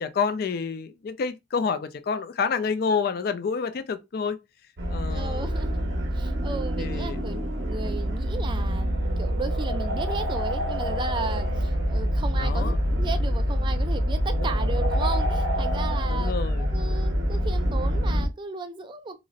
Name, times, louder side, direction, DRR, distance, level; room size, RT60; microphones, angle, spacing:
voice 1, 0.0-4.4 4.9-5.5 6.8-7.2 12.4-12.8 14.3-14.6 16.1-16.7, left 5 dB, 55° left, 0.4 m, -28 dB
sound 1, 4.8-18.3, equal, 75° right, 0.9 m, -26 dB
voice 2, 5.1-5.8 6.1-19.2, right 4 dB, 25° right, 0.3 m, -35 dB
3.9 x 2.0 x 2.4 m
head